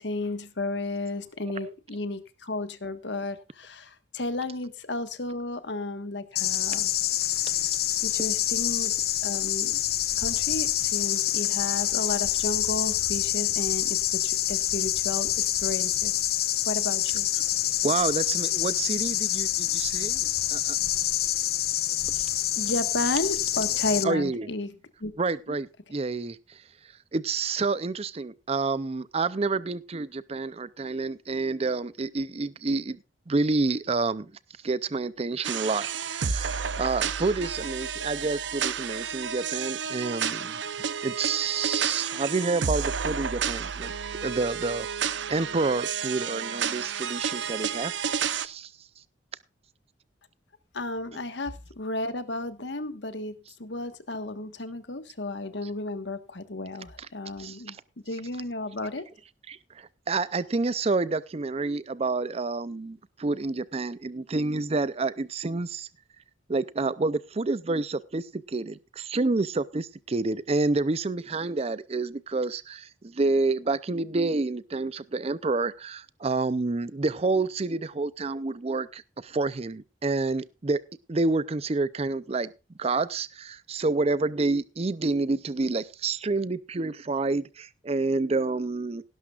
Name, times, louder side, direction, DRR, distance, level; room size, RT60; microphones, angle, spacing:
voice 1, 0.0-6.9 8.0-8.9 9.2-9.8 10.2-14.0 14.2-15.3 15.6-16.2 16.6-17.3 22.6-24.7 25.0-25.1 25.5-25.6 50.7-57.8 58.1-59.0, left 2 dB, 70° left, 1.4 m, -33 dB
sound 1, 6.3-24.0, left 13 dB, 55° left, 0.8 m, -26 dB
voice 2, 17.8-20.8 22.1-22.3 22.7-22.8 24.0-24.5 25.2-26.6 27.1-33.0 33.3-34.3 34.6-40.6 41.0-43.9 44.2-48.0 48.3-48.7 51.1-51.2 55.6-55.7 57.0-57.1 57.4-57.8 58.1-58.2 59.5-65.9 66.5-80.8 81.1-82.5 82.8-89.0, right 3 dB, 35° right, 0.5 m, -29 dB
sound 2, 35.4-48.5, right 7 dB, 80° right, 0.7 m, -31 dB
17.5 x 12.0 x 2.4 m
head